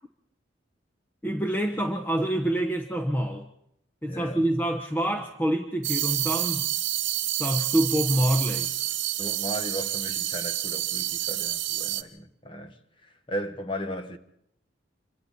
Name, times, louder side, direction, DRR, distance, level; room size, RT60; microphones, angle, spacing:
voice 1, 1.2-3.5 4.0-6.6 7.4-8.7, right 1 dB, 10° left, 1.0 m, -26 dB
voice 2, 4.1-4.5 9.2-14.2, equal, 25° left, 1.4 m, -36 dB
sound 1, 5.8-12.0, right 14 dB, 70° right, 1.1 m, -28 dB
27.5 x 23.0 x 4.3 m
head